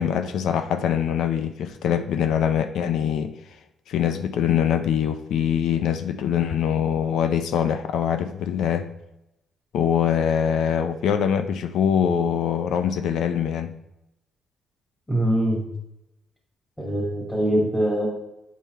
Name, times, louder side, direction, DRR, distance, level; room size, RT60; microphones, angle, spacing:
voice 1, 0.0-3.3 3.9-8.9 9.7-13.7, left 8 dB, 80° left, 9 dB, 0.5 m, -23 dB
voice 2, 15.1-15.6 16.8-18.1, right 1 dB, 10° left, -4 dB, 2.4 m, -23 dB
8.2 x 4.4 x 4.5 m, 0.86 s
cardioid pair, 90°, 0 cm